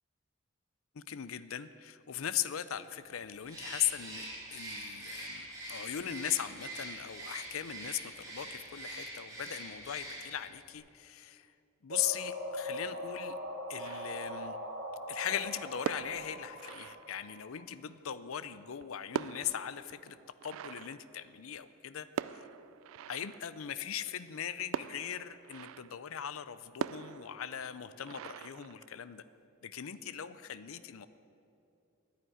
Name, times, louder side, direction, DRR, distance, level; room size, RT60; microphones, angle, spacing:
voice 1, 0.9-11.5 11.8-13.4 13.7-14.6 15.1-20.2 20.4-22.5 23.1-29.2 29.6-31.1, left 10 dB, 75° left, 14 dB, 0.5 m, -39 dB
Bird, 3.5-10.5, right 1 dB, 15° right, 3.7 m, -44 dB
sound 1, 11.9-17.6, left 1 dB, 55° right, 3.3 m, -41 dB
sound 2, 13.8-14.6 15.7-17.6 18.6-21.7 22.2-23.7 24.7-26.1 26.8-29.3, right 8 dB, 75° right, 0.3 m, -42 dB
10.5 x 9.4 x 9.9 m, 2.8 s
head